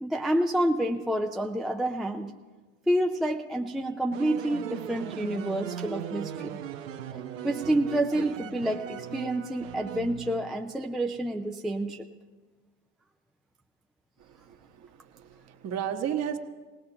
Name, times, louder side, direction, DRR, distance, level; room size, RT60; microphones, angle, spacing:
voice 1, 0.0-2.3 2.9-6.6 7.1-12.0, right 1 dB, ahead, 3 dB, 0.4 m, -28 dB
sound 1, 4.1-10.8, right 9 dB, 85° right, 1.0 m, -38 dB
voice 2, 14.5-14.9 15.1-16.4, right 9 dB, 40° right, 5 dB, 1.3 m, -33 dB
19.0 x 18.0 x 2.9 m, 1.3 s
hypercardioid pair, 100°, 38 cm